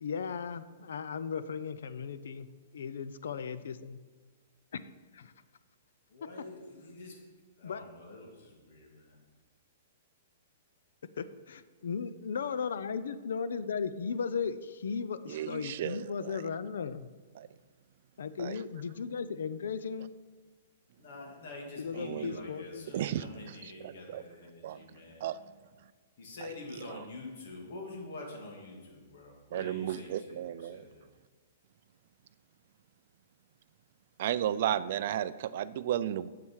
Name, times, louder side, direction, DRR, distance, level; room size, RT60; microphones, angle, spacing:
voice 1, 0.0-2.5 2.7-4.0 4.7-4.8 5.1-5.3 7.6-7.8 11.2-17.1 18.2-20.1 21.8-22.9, left 6 dB, 80° left, 13 dB, 0.6 m, -36 dB
voice 2, 6.1-7.1 7.6-9.2 21.0-25.2 26.2-31.1, left 2 dB, 55° left, -1 dB, 2.6 m, -46 dB
voice 3, 15.3-16.4 17.4-17.5 18.4-18.6 21.9-22.4 22.9-24.2 24.6-24.8 25.2-25.4 26.4-26.5 26.9-27.0 29.5-30.9 34.2-36.3, right 11 dB, 45° right, 15 dB, 0.4 m, -34 dB
8.9 x 7.6 x 4.7 m, 1.4 s
hypercardioid pair, 170°, 0 cm